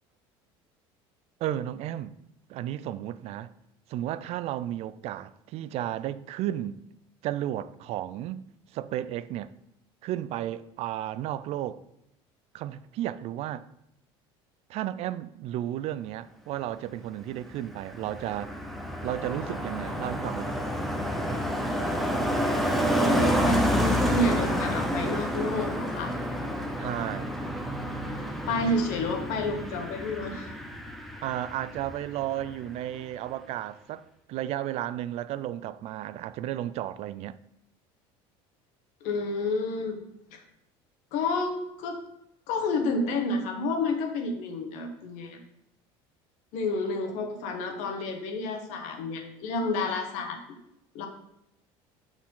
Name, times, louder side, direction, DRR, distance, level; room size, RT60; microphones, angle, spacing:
voice 1, 1.4-2.1 2.5-3.5 3.9-6.8 7.2-8.5 8.7-9.5 10.0-11.8 12.5-13.7 14.7-18.6 19.0-20.6 26.8-27.3 31.2-37.4, right 12 dB, 55° right, 0.4 m, -33 dB
Car passing by, 17.3-32.1 32.4-32.7, equal, ahead, 0.9 m, -29 dB
voice 2, 23.0-26.1 28.5-30.5 39.0-40.0 40.3-40.4 41.1-42.0 42.5-45.4 46.5-50.4 50.9-51.1, left 2 dB, 70° left, 1.4 m, -30 dB
6.4 x 6.0 x 3.8 m
supercardioid pair, 110°, 13 cm